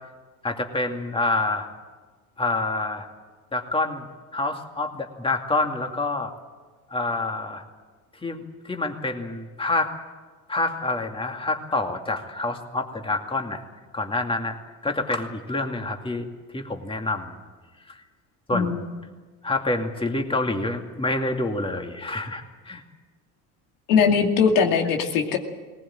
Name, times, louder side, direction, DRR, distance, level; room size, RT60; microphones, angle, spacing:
voice 1, 0.4-1.7 2.4-3.1 3.5-4.0 4.3-6.3 6.9-7.6 8.2-9.9 10.5-13.6 13.9-14.6 14.8-16.3 16.5-17.4 17.9-18.0 18.5-18.7 19.4-22.8, left 2 dB, 10° left, 3 dB, 2.4 m, -27 dB
voice 2, 18.5-18.9 23.9-25.4, left 6 dB, 90° left, 3 dB, 2.5 m, -20 dB
20.5 x 19.0 x 8.9 m, 1.4 s
supercardioid pair, 105°, 44 cm